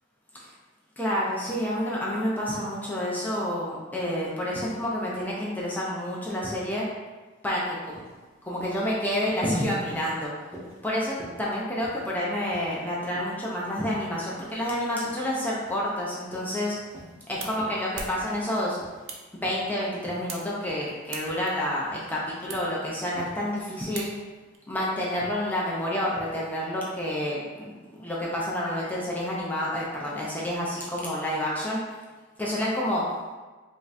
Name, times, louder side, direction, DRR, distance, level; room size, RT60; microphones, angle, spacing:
voice 1, 1.0-6.9 7.4-8.0 8.4-10.3 10.8-16.8 17.3-18.8 19.4-24.1 24.7-31.8 32.4-33.0, left 1 dB, 10° left, -6 dB, 0.5 m, -29 dB
sound 1, 7.4-7.6 7.9-8.2 8.6-8.8 9.2-9.5 9.9-10.2 10.5-10.8 11.2-11.5 11.8-12.1 12.5-12.9 13.1-13.4 13.8-14.0 14.4-14.7 15.0-15.3 15.7-16.0 16.3-16.5 16.9-17.2 17.5-17.9 18.2-18.5 18.8-19.1 19.4-19.7 20.0-20.3 20.6-21.0 21.2-21.5 21.9-22.1 22.5-22.8 23.1-23.4, equal, 10° right, 0.8 m, -46 dB
sound 2, 16.7-24.6, right 4 dB, 70° right, 0.6 m, -44 dB
5.1 x 2.6 x 2.5 m, 1.3 s
head